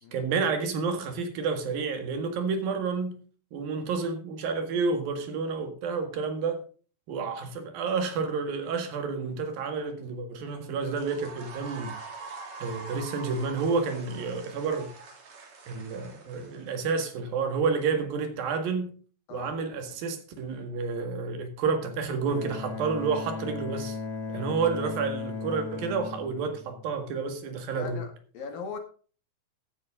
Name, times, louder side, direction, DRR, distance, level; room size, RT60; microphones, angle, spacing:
voice 1, 0.1-3.2 3.5-6.6 7.1-12.0 12.6-14.9 15.7-19.0 19.3-24.0 24.3-28.0, right 5 dB, 85° right, 3.7 m, -30 dB
sound 1, 10.8-17.1, right 4 dB, 55° right, 3.6 m, -44 dB
Bowed string instrument, 22.3-27.3, left 4 dB, 50° left, 2.2 m, -37 dB
voice 2, 27.7-28.8, left 4 dB, 85° left, 3.9 m, -40 dB
14.5 x 9.8 x 3.7 m
omnidirectional pair, 4.0 m